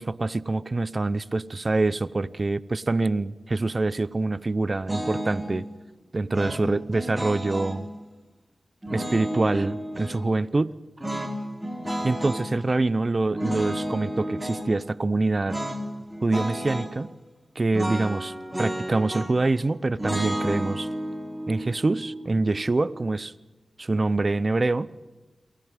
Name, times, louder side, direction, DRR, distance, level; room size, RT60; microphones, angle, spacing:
voice 1, 0.0-5.7 6.1-7.9 8.9-10.7 12.0-15.6 16.2-17.1 17.6-20.9 21.5-23.3 23.8-24.9, right 2 dB, 45° right, 18 dB, 0.7 m, -25 dB
sound 1, 4.9-5.5 6.3-7.8 8.8-10.2 11.0-12.5 13.3-14.7 15.5-15.8 16.1-16.9 17.7-19.5 20.0-23.1, equal, 20° right, 3.8 m, -32 dB
23.0 x 17.0 x 9.2 m, 1.1 s
cardioid pair, 50°, 0 cm